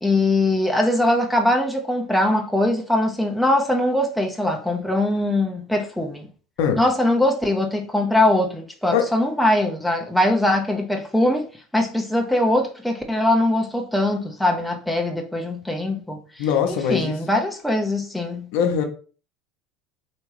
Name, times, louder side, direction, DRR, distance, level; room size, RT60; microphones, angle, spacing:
voice 1, 0.0-6.3 6.8-11.5 11.7-18.5, left 1 dB, ahead, 0.7 m, -21 dB
voice 2, 16.4-17.2 18.5-18.8, left 8 dB, 70° left, 0.9 m, -21 dB
3.4 x 3.0 x 3.1 m
supercardioid pair, 105°, 0 cm